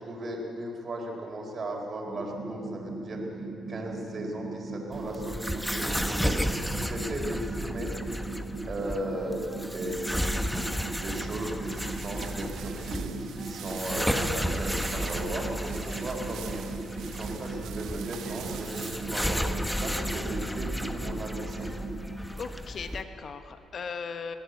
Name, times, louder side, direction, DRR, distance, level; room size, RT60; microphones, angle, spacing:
voice 1, 0.0-8.0 8.7-16.7 17.1-21.7, right 1 dB, 45° right, 0 dB, 4.4 m, -37 dB
sound 1, 2.0-22.0, right 3 dB, 15° right, 4.0 m, -38 dB
sound 2, 4.9-23.0, equal, ahead, 1.2 m, -33 dB
sound 3, 11.7-19.1, right 8 dB, 80° right, 1.3 m, -43 dB
voice 2, 14.9-15.2 22.4-24.4, left 5 dB, 50° left, 8 dB, 1.2 m, -38 dB
21.0 x 16.0 x 8.2 m, 2.6 s
cardioid pair, 90°, 0 cm